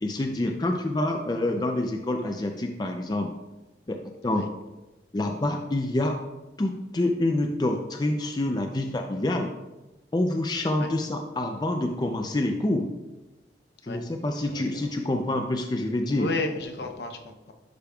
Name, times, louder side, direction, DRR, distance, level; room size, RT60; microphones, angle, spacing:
voice 1, 0.0-3.3 3.9-4.4 5.1-6.2 6.6-9.5 10.1-12.9 13.8-16.3, left 1 dB, 20° left, 3 dB, 0.4 m, -27 dB
voice 2, 16.2-17.5, left 3 dB, 65° left, 5 dB, 0.7 m, -32 dB
11.5 x 5.2 x 2.3 m, 1.1 s
head